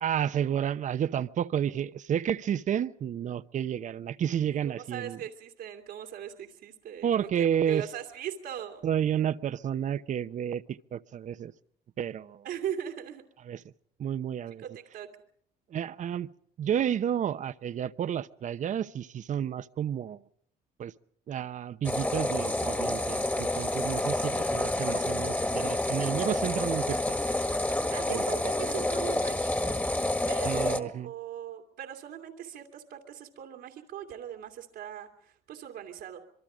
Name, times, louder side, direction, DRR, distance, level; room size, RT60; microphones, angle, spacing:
voice 1, 0.0-5.2 7.0-7.9 8.8-11.5 12.0-12.4 13.5-13.6 14.0-14.6 15.7-16.3 16.6-20.2 20.8-20.9 21.3-27.2 28.1-28.2 30.4-31.1, right 9 dB, 45° right, 0.8 m, -31 dB
voice 2, 4.7-8.9 12.4-13.2 14.6-15.1 27.9-29.8 30.3-36.2, right 10 dB, 80° right, 2.6 m, -39 dB
sound 1, 21.8-30.8, left 1 dB, 10° left, 1.7 m, -29 dB
26.0 x 23.0 x 5.0 m
cardioid pair, 110°, 17 cm